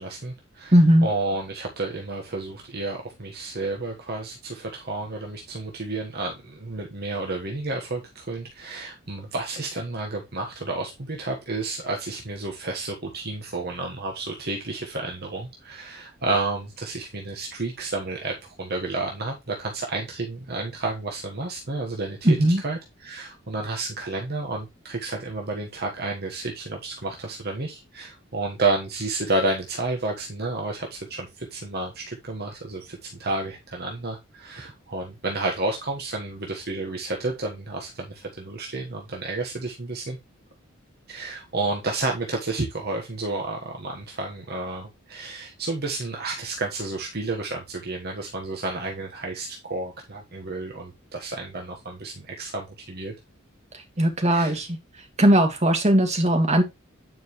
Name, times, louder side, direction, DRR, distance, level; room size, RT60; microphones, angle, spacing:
voice 1, 0.0-0.7 1.0-18.3 18.6-22.4 22.6-40.2 41.1-53.1 54.3-54.5, right 2 dB, 50° right, 1 dB, 1.4 m, -31 dB
voice 2, 0.7-1.1 22.2-22.6 54.0-54.8 55.2-56.6, right 1 dB, 35° right, 4 dB, 2.2 m, -18 dB
9.3 x 5.2 x 3.1 m, 0.22 s
head